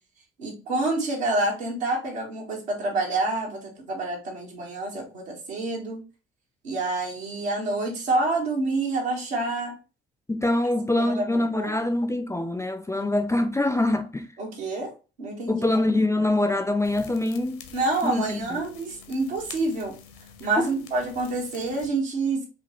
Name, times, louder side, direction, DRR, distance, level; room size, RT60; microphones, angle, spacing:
voice 1, 0.4-6.0 6.6-9.7 11.0-11.7 14.4-14.9 15.2-15.6 17.7-19.9 20.4-22.4, right 2 dB, 75° right, 1.3 m, -27 dB
voice 2, 10.3-14.3 15.5-17.7 18.0-18.6 20.6-20.7, left 2 dB, 10° left, 0.4 m, -24 dB
sound 1, 16.8-21.9, left 6 dB, 65° left, 0.8 m, -47 dB
5.0 x 2.8 x 2.9 m
figure-of-eight pair, 50°, 32 cm